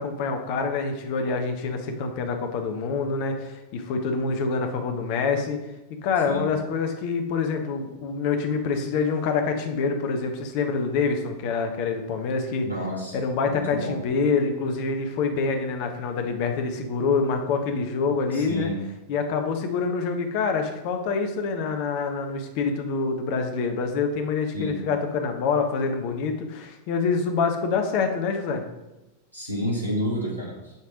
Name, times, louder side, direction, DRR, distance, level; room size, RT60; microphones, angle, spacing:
voice 1, 0.0-5.6 6.0-12.7 13.1-18.7 19.1-28.6, left 5 dB, 45° left, 5 dB, 0.9 m, -26 dB
voice 2, 12.6-13.2 13.5-14.0 18.3-18.8 24.5-24.7 29.3-30.7, equal, 90° left, -4 dB, 2.0 m, -29 dB
8.1 x 3.4 x 5.0 m, 1.0 s
figure-of-eight pair, 90°, 0 cm